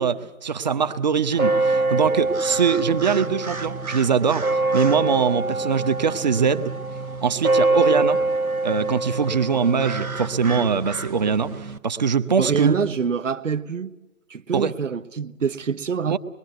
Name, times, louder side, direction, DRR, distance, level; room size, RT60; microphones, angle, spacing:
voice 1, 0.0-4.5 4.7-6.7 7.2-8.2 8.6-12.7 14.5-14.7 16.1-16.2, right 6 dB, 30° right, 1.1 m, -22 dB
sound 1, 1.3-11.8, right 2 dB, 85° right, 1.6 m, -25 dB
voice 2, 12.4-13.9 14.3-16.2, right 6 dB, 60° right, 1.1 m, -25 dB
26.0 x 22.0 x 8.0 m
figure-of-eight pair, 145°, 42 cm